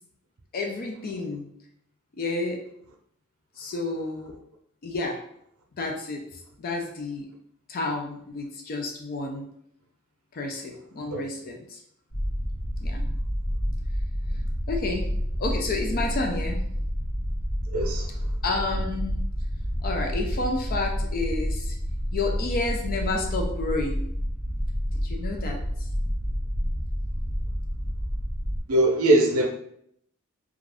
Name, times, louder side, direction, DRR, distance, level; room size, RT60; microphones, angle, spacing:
voice 1, 0.5-1.5 2.1-2.6 3.6-4.3 4.8-5.2 5.8-7.3 7.7-9.5 10.3-11.8 12.8-13.0 14.7-15.1 15.4-16.6 18.4-19.2 19.8-21.7 22.1-24.0 25.0-25.6, left 3 dB, 40° left, 0.4 m, -30 dB
sound 1, 12.1-28.6, equal, 70° left, 0.9 m, -29 dB
voice 2, 17.7-18.1 28.7-29.5, right 1 dB, 85° right, 0.6 m, -21 dB
2.4 x 2.4 x 3.3 m
head